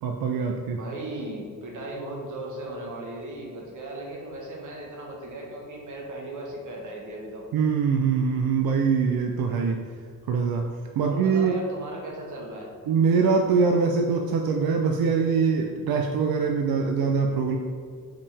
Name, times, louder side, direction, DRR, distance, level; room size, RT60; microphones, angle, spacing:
voice 1, 0.0-0.8 7.5-9.9 10.3-10.7 11.0-11.6 12.9-17.6, right 5 dB, 90° right, 3 dB, 0.5 m, -23 dB
voice 2, 0.7-7.4 11.0-12.7, right 1 dB, 60° right, -1 dB, 1.3 m, -37 dB
5.5 x 5.0 x 3.4 m, 2.1 s
wide cardioid pair, 165°, 35 cm